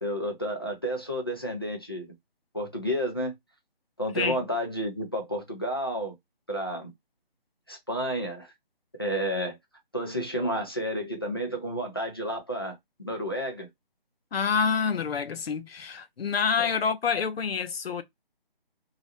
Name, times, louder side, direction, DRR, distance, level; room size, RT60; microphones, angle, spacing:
voice 1, 0.0-2.1 2.5-3.3 4.0-6.1 6.5-6.9 7.7-8.5 9.0-9.6 9.9-13.7 16.6-16.7, equal, 25° left, 0.5 m, -31 dB
voice 2, 14.3-18.0, left 6 dB, 85° left, 0.6 m, -27 dB
2.4 x 2.0 x 2.7 m
figure-of-eight pair, 175°, 29 cm